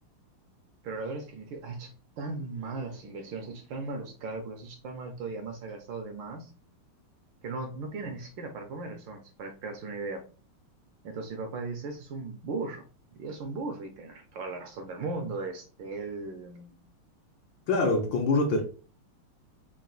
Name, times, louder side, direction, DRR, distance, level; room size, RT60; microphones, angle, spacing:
voice 1, 0.8-6.5 7.4-10.2 11.0-12.9 13.1-16.8, right 3 dB, 70° right, 1.2 m, -37 dB
voice 2, 17.7-18.6, left 2 dB, 65° left, 1.3 m, -24 dB
4.1 x 2.5 x 3.8 m
omnidirectional pair, 2.4 m